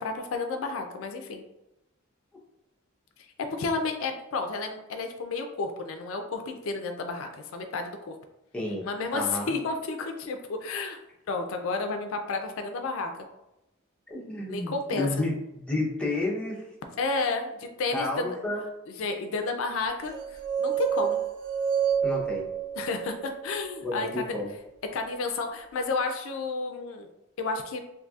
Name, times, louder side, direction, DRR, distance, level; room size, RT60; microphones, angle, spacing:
voice 1, 0.0-1.4 3.4-8.2 8.8-11.0 11.3-13.1 14.5-15.1 17.0-18.4 19.0-21.2 22.8-24.4 24.9-27.1 27.4-27.8, left 3 dB, 70° left, 5 dB, 0.4 m, -31 dB
voice 2, 8.5-8.8 9.1-9.4 14.1-15.3 15.7-16.6 17.9-18.6 22.0-22.5 23.8-24.5, left 2 dB, 5° left, -4 dB, 0.7 m, -30 dB
sound 1, 20.1-24.2, right 8 dB, 60° right, 0.5 m, -29 dB
3.9 x 2.7 x 2.3 m, 0.90 s
head